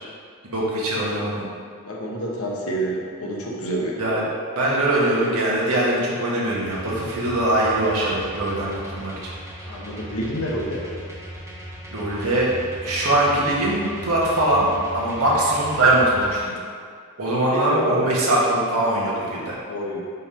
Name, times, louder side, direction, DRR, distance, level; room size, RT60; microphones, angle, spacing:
voice 1, 0.5-1.5 4.0-4.2 4.5-9.1 11.9-12.5 12.8-16.5 17.2-19.6, right 1 dB, 75° right, -6 dB, 1.5 m, -21 dB
voice 2, 1.8-4.0 9.7-10.9 17.5-18.1 19.7-20.1, right 1 dB, 70° left, -3 dB, 1.1 m, -28 dB
sound 1, 6.6-16.3, equal, 15° right, 1.0 m, -38 dB
5.5 x 3.6 x 5.7 m, 2.1 s
head